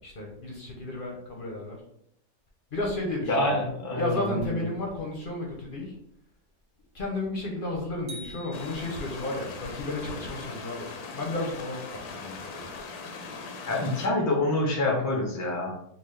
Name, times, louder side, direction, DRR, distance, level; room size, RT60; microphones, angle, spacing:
voice 1, 0.0-1.8 2.7-3.6 3.9-6.0 6.9-12.7, left 2 dB, 45° left, -1 dB, 0.7 m, -33 dB
voice 2, 3.3-4.5 13.7-15.7, left 2 dB, 25° left, -1 dB, 0.3 m, -26 dB
sound 1, 8.1-9.5, equal, 60° right, 0.4 m, -45 dB
sound 2, 8.5-14.1, left 4 dB, 80° left, 1.1 m, -40 dB
4.0 x 2.3 x 3.2 m, 0.74 s
omnidirectional pair, 1.6 m